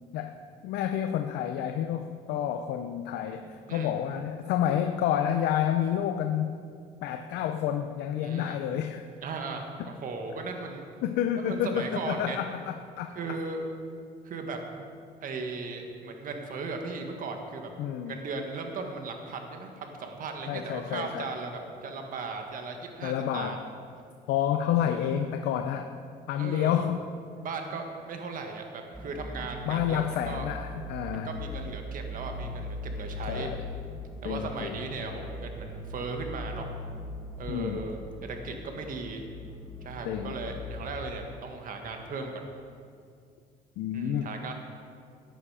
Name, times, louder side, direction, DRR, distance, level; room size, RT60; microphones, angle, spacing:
voice 1, 0.6-6.6 7.0-9.0 11.0-13.4 17.8-18.1 20.5-21.3 23.0-23.6 24.3-25.9 26.3-27.0 29.7-31.3 33.3-33.6 34.2-34.8 37.5-37.9 40.0-40.4 43.8-44.3, left 10 dB, 85° left, 7 dB, 0.6 m, -29 dB
voice 2, 8.2-8.6 9.2-10.8 11.4-12.4 13.1-13.6 14.2-14.6 15.2-17.7 18.0-23.6 24.8-25.1 26.3-26.9 27.4-30.4 31.1-33.5 34.2-36.7 37.4-39.2 39.8-42.4 43.9-44.5, right 4 dB, 55° right, 4 dB, 1.7 m, -37 dB
sound 1, 28.9-41.0, left 1 dB, 5° right, 1.5 m, -40 dB
14.5 x 10.0 x 5.0 m, 2.3 s
cardioid pair, 110°, 17 cm